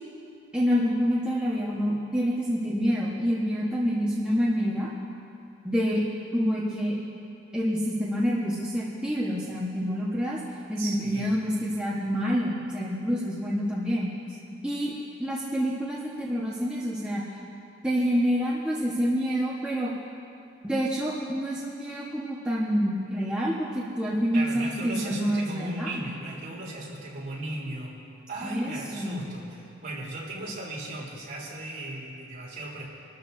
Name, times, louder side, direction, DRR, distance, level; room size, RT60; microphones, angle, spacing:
voice 1, 0.5-4.9 5.6-6.0 6.3-7.0 7.5-10.4 10.7-14.1 14.6-14.9 15.2-17.2 17.8-19.9 20.6-26.1 28.4-29.3, equal, 5° right, -8 dB, 1.3 m, -27 dB
voice 2, 10.8-11.3 14.3-14.4 24.3-28.0 28.3-32.9, right 2 dB, 45° right, -6 dB, 3.4 m, -37 dB
25.5 x 13.5 x 2.8 m, 2.6 s
head